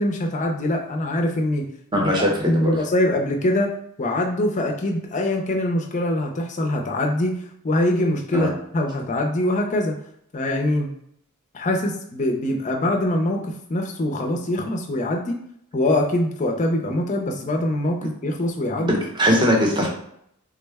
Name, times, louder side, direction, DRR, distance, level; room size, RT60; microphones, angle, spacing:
voice 1, 0.0-1.7 2.0-2.1 2.7-7.4 7.6-10.0 10.3-10.9 11.5-15.4 15.7-19.0, left 1 dB, 35° left, 2 dB, 0.5 m, -23 dB
voice 2, 1.9-2.7 8.3-8.5 18.8-19.9, equal, 20° right, -1 dB, 0.8 m, -20 dB
3.6 x 2.1 x 3.4 m, 0.72 s
head